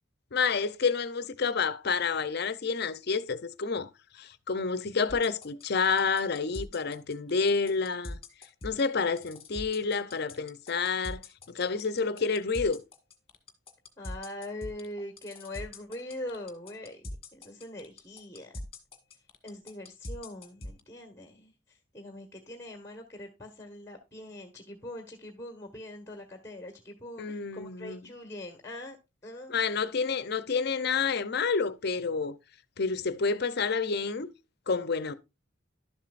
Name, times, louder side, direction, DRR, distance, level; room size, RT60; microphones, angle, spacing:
voice 1, 0.3-3.9 4.1-8.2 8.6-11.2 11.5-12.8 27.2-28.1 29.5-32.4 32.8-34.3 34.7-35.1, left 5 dB, 55° left, 0.6 m, -29 dB
sound 1, 5.1-20.8, left 1 dB, 30° left, 1.6 m, -41 dB
voice 2, 14.0-17.0 17.3-18.5 19.4-29.0 29.2-29.6, left 1 dB, 15° left, 1.4 m, -42 dB
12.0 x 7.3 x 2.5 m
head